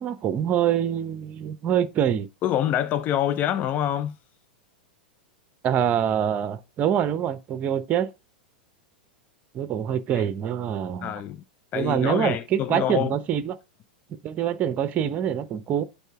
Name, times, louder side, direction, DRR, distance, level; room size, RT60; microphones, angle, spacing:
voice 1, 0.0-2.3 5.6-8.1 9.5-11.1 11.7-13.5 14.2-15.8, right 9 dB, 30° right, 0.8 m, -25 dB
voice 2, 2.4-4.2 10.1-10.3 11.0-11.4 11.7-13.2, left 11 dB, 35° left, 0.5 m, -26 dB
8.2 x 4.2 x 3.5 m
figure-of-eight pair, 95°, 5 cm